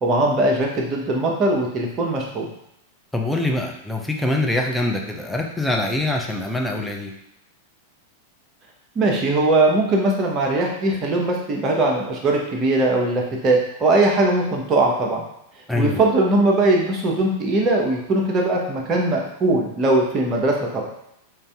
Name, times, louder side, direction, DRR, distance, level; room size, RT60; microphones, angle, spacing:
voice 1, 0.0-2.5 8.9-15.2 15.7-20.8, right 2 dB, 30° right, -1 dB, 1.1 m, -20 dB
voice 2, 3.1-7.1 15.7-16.0, left 2 dB, 5° left, 1 dB, 0.7 m, -24 dB
3.9 x 2.7 x 3.6 m, 0.80 s
hypercardioid pair, 95°, 0 cm